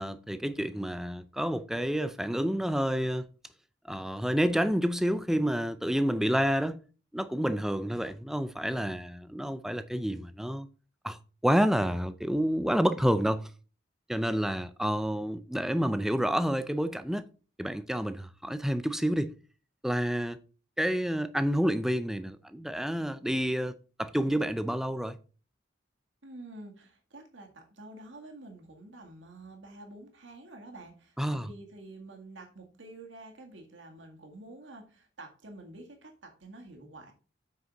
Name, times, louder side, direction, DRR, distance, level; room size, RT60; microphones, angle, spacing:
voice 1, 0.0-3.3 3.9-6.8 7.1-10.7 11.0-11.2 11.4-13.5 14.1-17.2 17.6-19.3 19.8-20.4 20.8-23.7 24.0-25.2 31.2-31.5, equal, ahead, 0.4 m, -29 dB
voice 2, 26.2-37.1, right 2 dB, 80° right, 1.9 m, -48 dB
7.9 x 5.8 x 4.1 m
head